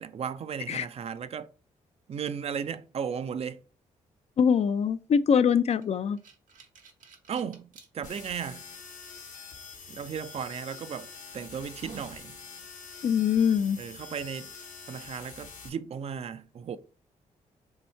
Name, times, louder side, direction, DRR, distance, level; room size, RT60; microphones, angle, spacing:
voice 1, 0.0-1.5 2.1-3.6 7.3-7.7 7.9-8.6 9.9-12.4 13.8-14.5 14.9-16.8, right 7 dB, 45° right, 0.4 m, -35 dB
voice 2, 4.4-6.2 13.0-13.8, left 7 dB, 50° left, 0.4 m, -23 dB
sound 1, 5.8-7.9 8.5-8.6 10.4-10.6 11.1-11.2 11.6-12.2, right 5 dB, 70° right, 0.9 m, -49 dB
sound 2, 8.0-15.7, left 5 dB, 65° left, 0.9 m, -46 dB
2.8 x 2.7 x 4.3 m
supercardioid pair, 65°, 14 cm